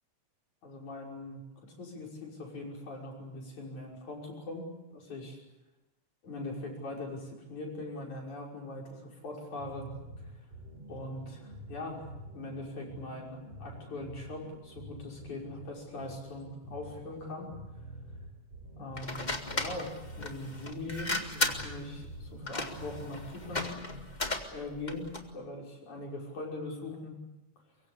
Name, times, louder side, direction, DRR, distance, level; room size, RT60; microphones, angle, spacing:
voice 1, 0.6-1.4 1.8-5.4 6.2-9.9 10.9-12.1 12.3-17.5 18.8-23.8 24.5-27.2, left 2 dB, 80° left, 0 dB, 7.2 m, -41 dB
sound 1, 9.6-24.1, right 1 dB, 65° right, 6.8 m, -47 dB
sound 2, 18.9-25.3, left 2 dB, 15° left, 1.7 m, -36 dB
23.5 x 23.5 x 8.6 m, 0.99 s
omnidirectional pair, 3.3 m